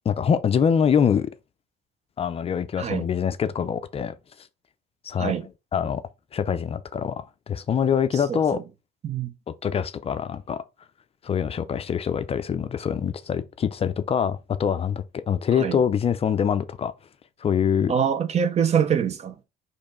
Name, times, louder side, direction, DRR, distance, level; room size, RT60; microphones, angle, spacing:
voice 1, 0.1-1.3 2.2-4.1 5.0-5.3 5.7-6.0 6.3-8.6 9.6-10.6 11.2-16.9 17.4-17.9, left 7 dB, 35° left, 0.4 m, -24 dB
voice 2, 8.1-8.6 9.0-9.3 15.6-15.8 17.9-19.4, right 7 dB, 40° right, 0.7 m, -25 dB
4.5 x 3.1 x 3.8 m
cardioid pair, 110°, 17 cm